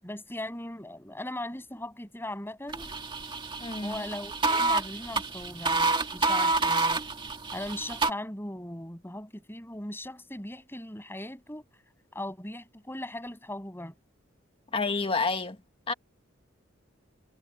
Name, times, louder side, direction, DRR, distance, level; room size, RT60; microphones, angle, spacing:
voice 1, 0.0-3.0 3.8-7.0 7.5-11.6 12.1-13.9, left 1 dB, 10° left, 7.8 m, -39 dB
sound 1, 2.7-8.1, right 3 dB, 25° right, 2.0 m, -28 dB
voice 2, 3.6-4.1 14.7-15.6 15.9-16.0, left 4 dB, 30° left, 1.8 m, -29 dB
head